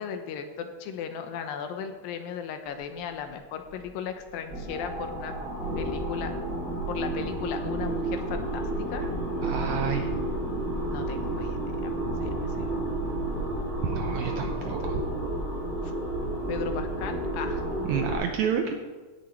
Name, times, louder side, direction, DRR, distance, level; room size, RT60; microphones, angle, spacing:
voice 1, 0.0-5.3 5.8-6.3 6.9-9.0 10.9-12.7 14.4-15.0 15.8-15.9 16.5-17.6, left 7 dB, 85° left, 7 dB, 2.7 m, -37 dB
sound 1, 3.3-3.4 3.6-3.8 4.2-18.1, right 1 dB, 15° right, 3.1 m, -31 dB
voice 2, 9.4-10.1 13.8-15.1 17.9-18.8, right 7 dB, 80° right, 4 dB, 1.7 m, -29 dB
16.5 x 6.8 x 4.6 m, 1.3 s
omnidirectional pair, 4.0 m